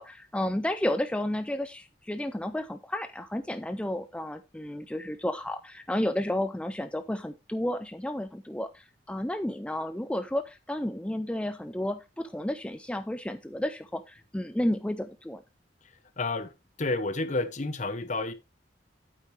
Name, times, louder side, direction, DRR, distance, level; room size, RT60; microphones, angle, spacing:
voice 1, 0.0-15.4, left 1 dB, 5° left, 0.4 m, -32 dB
voice 2, 16.2-16.5 16.8-18.3, left 2 dB, 45° left, 1.0 m, -30 dB
8.9 x 8.2 x 3.2 m
head